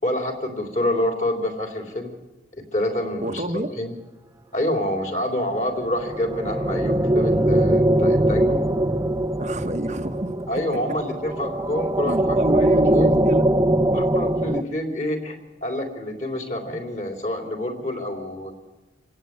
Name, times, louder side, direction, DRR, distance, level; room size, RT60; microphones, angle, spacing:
voice 1, 0.0-2.1 2.5-3.9 4.5-8.6 10.5-13.2 13.9-18.5, left 1 dB, 40° left, 4 dB, 3.7 m, -27 dB
voice 2, 3.2-3.7 9.4-10.8 12.1-13.4, right 1 dB, 40° right, 6 dB, 1.1 m, -27 dB
sound 1, 5.7-14.6, right 1 dB, 20° right, 0.7 m, -21 dB
27.5 x 17.0 x 9.6 m, 1.1 s
head